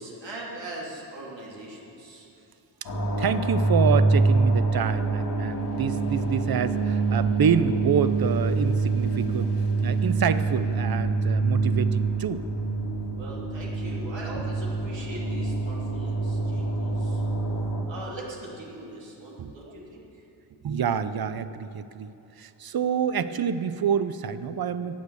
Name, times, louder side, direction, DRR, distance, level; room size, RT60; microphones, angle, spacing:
voice 1, 0.0-2.3 13.2-17.2 17.9-20.0, right 1 dB, 80° right, -4 dB, 2.9 m, -40 dB
sound 1, 2.8-17.8, right 3 dB, 60° left, 2.0 m, -25 dB
voice 2, 3.2-9.5 9.8-12.4 16.6-16.7 19.4-19.8 20.6-25.0, right 7 dB, 55° right, 13 dB, 0.7 m, -27 dB
15.0 x 9.3 x 8.2 m, 2.8 s
wide cardioid pair, 130°, 44 cm